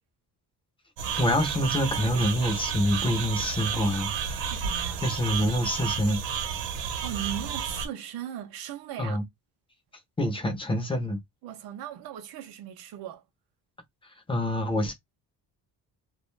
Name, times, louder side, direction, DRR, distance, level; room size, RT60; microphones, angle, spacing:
sound 1, 1.0-7.9, right 7 dB, 85° right, 0.8 m, -31 dB
voice 1, 1.2-4.5 5.0-6.2 9.0-9.2 10.2-11.2 14.3-14.9, left 1 dB, 15° left, 0.4 m, -26 dB
voice 2, 4.4-5.0 7.0-9.2 11.4-13.2, right 11 dB, 60° right, 0.5 m, -38 dB
2.3 x 2.2 x 3.1 m
cardioid pair, 180°, 43 cm